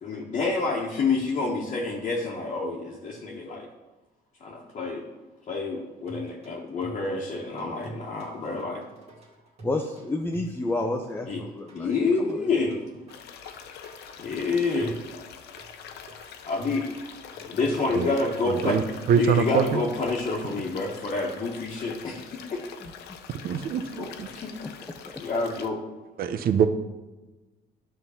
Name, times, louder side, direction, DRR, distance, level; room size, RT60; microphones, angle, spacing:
voice 1, 0.0-3.7 4.4-5.0 5.5-8.8 11.3-11.4 11.7-12.7 14.2-14.9 16.4-16.9 17.4-18.8 19.2-22.6 24.0-24.5 25.2-25.8, left 3 dB, 45° left, -4 dB, 1.3 m, -28 dB
sound 1, 6.1-20.3, right 4 dB, 40° right, 2.3 m, -45 dB
voice 2, 9.6-12.5 22.8-22.9 24.6-24.7 25.1-25.2, left 2 dB, 15° left, 3 dB, 0.7 m, -31 dB
sound 2, 13.1-25.7, left 7 dB, 80° left, 0.8 m, -44 dB
voice 3, 18.4-18.8 19.1-19.8 23.4-24.3 26.2-26.7, right 8 dB, 60° right, 11 dB, 0.8 m, -24 dB
10.5 x 3.8 x 7.0 m, 1.1 s
cardioid pair, 110°, 17 cm